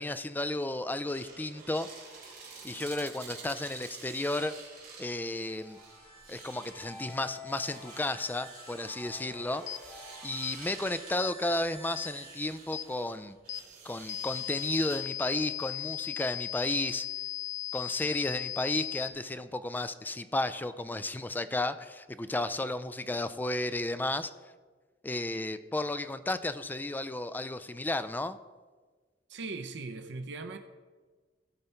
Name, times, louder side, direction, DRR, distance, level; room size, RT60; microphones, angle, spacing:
voice 1, 0.0-4.5 5.0-5.8 6.3-9.6 9.9-13.4 13.8-17.1 17.7-24.3 25.0-28.4, left 2 dB, 10° left, 12 dB, 0.4 m, -33 dB
sound 1, 0.7-15.0, right 4 dB, 55° right, 3.2 m, -50 dB
sound 2, 5.4-13.1, left 1 dB, 30° left, 2.2 m, -49 dB
sound 3, 9.7-9.8 10.4-10.6 11.2-11.4 12.0-12.1 12.7-12.9 13.5-13.6 14.1-19.1, left 12 dB, 80° left, 0.5 m, -37 dB
voice 2, 29.3-30.6, right 3 dB, 70° right, 6 dB, 0.7 m, -39 dB
15.5 x 5.5 x 4.4 m, 1.4 s
head